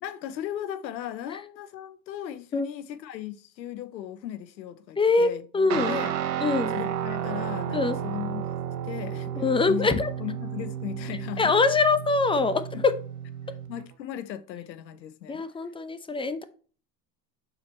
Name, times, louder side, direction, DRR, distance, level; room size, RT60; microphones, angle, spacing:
voice 1, 0.0-6.1 6.7-8.5 8.8-9.4 9.7-11.5 12.7-12.8 13.7-15.4, left 11 dB, 85° left, 0.8 m, -37 dB
voice 2, 5.0-6.0 6.4-6.8 7.7-8.0 9.4-10.1 11.4-12.9 15.3-16.4, left 4 dB, 10° left, 0.7 m, -23 dB
Guitar, 5.7-13.8, right 9 dB, 80° right, 1.0 m, -32 dB
6.5 x 4.5 x 4.3 m
hypercardioid pair, 90°, 49 cm